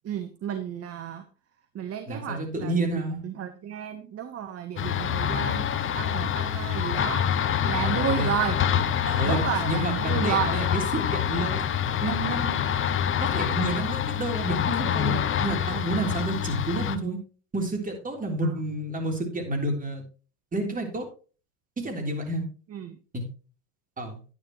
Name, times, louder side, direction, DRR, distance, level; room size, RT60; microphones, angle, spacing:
voice 1, 0.0-1.2 1.7-7.3 7.7-8.6 9.2-10.5 18.4-18.5 22.7-23.0, right 9 dB, 35° right, 9 dB, 1.2 m, -32 dB
voice 2, 2.1-3.2 7.8-8.3 9.1-11.7 12.0-12.6 13.2-17.2 17.5-20.0 20.5-21.1 21.8-22.4 23.1-23.2 24.0-24.2, right 2 dB, 20° right, 2 dB, 3.6 m, -30 dB
sound 1, 4.8-17.0, left 9 dB, 30° left, 0.9 m, -26 dB
10.5 x 9.9 x 3.1 m, 0.36 s
supercardioid pair, 100°, 41 cm